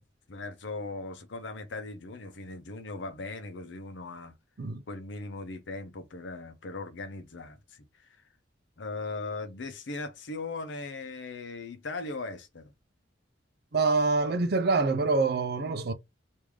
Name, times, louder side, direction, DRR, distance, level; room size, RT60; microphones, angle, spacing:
voice 1, 0.3-4.4 4.9-8.2 8.8-12.6, left 3 dB, 80° left, 0.7 m, -39 dB
voice 2, 13.7-15.9, right 3 dB, 60° right, 0.5 m, -25 dB
3.2 x 2.6 x 3.4 m
head